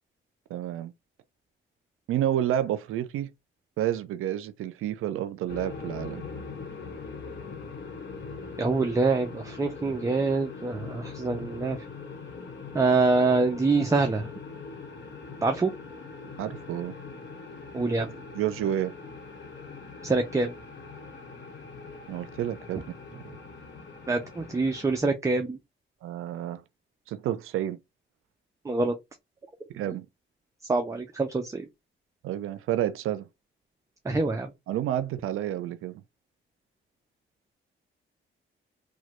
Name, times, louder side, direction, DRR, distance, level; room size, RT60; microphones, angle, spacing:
voice 1, 0.5-0.9 2.1-3.3 3.8-6.3 16.4-17.0 18.0-18.1 18.3-18.9 22.1-22.8 23.1-23.4 26.0-26.6 27.1-27.8 29.7-30.1 32.2-33.3 34.7-36.0, right 11 dB, 80° right, 0.4 m, -30 dB
sound 1, 5.5-25.0, left 4 dB, 60° left, 1.1 m, -42 dB
voice 2, 8.6-11.8 12.7-14.3 15.4-15.7 17.7-18.1 20.0-20.5 24.1-25.6 28.6-29.0 30.7-31.7 34.0-34.5, right 3 dB, 15° right, 0.4 m, -25 dB
3.0 x 2.2 x 3.0 m
cardioid pair, 105°, 21 cm